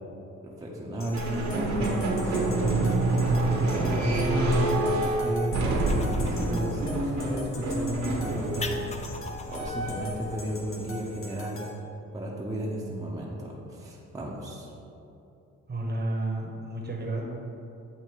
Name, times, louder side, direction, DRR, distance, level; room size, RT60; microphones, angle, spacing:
voice 1, 0.4-2.6 3.6-5.5 6.2-8.8 9.5-11.6 12.1-14.7, equal, 10° right, -4 dB, 0.8 m, -33 dB
sound 1, 1.0-11.7, left 1 dB, 45° left, 0.9 m, -42 dB
sound 2, 1.1-10.2, right 2 dB, 65° right, 1.1 m, -27 dB
sound 3, 5.7-11.1, left 4 dB, 25° left, 0.4 m, -42 dB
voice 2, 15.7-17.2, right 2 dB, 35° right, 0 dB, 1.0 m, -31 dB
8.2 x 2.8 x 4.6 m, 2.8 s
cardioid pair, 90°, 30 cm